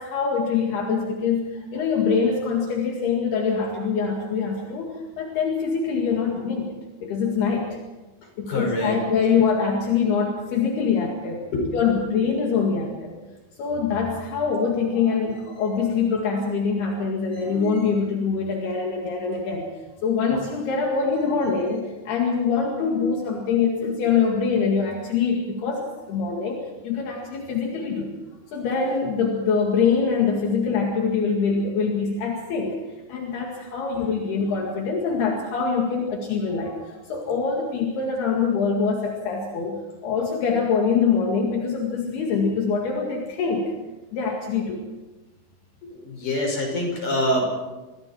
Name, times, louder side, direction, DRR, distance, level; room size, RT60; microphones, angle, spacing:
voice 1, 0.0-6.7 7.0-7.8 8.4-11.5 11.7-13.1 13.6-19.7 20.0-28.1 28.5-32.8 33.1-43.7 44.1-44.8, left 5 dB, 70° left, 0 dB, 4.0 m, -24 dB
voice 2, 8.2-9.0 11.5-11.8 45.8-47.5, left 1 dB, 50° left, 2 dB, 7.1 m, -26 dB
28.5 x 22.0 x 4.5 m, 1.2 s
omnidirectional pair, 4.9 m